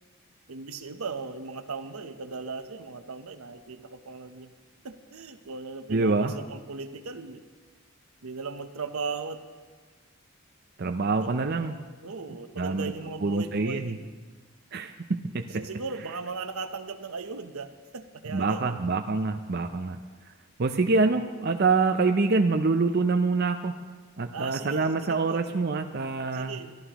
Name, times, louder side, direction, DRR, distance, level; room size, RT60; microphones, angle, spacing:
voice 1, 0.5-4.5 4.8-7.4 8.2-9.4 11.1-11.3 12.0-14.1 15.5-18.8 24.3-25.6 26.3-26.7, right 4 dB, 80° right, 9 dB, 0.9 m, -37 dB
voice 2, 5.9-6.4 10.8-11.7 12.3-14.0 14.7-16.2 18.2-20.0 20.3-20.4 20.6-23.8 24.2-26.6, right 3 dB, 45° right, 7 dB, 0.5 m, -26 dB
22.5 x 13.5 x 3.0 m, 1.4 s
head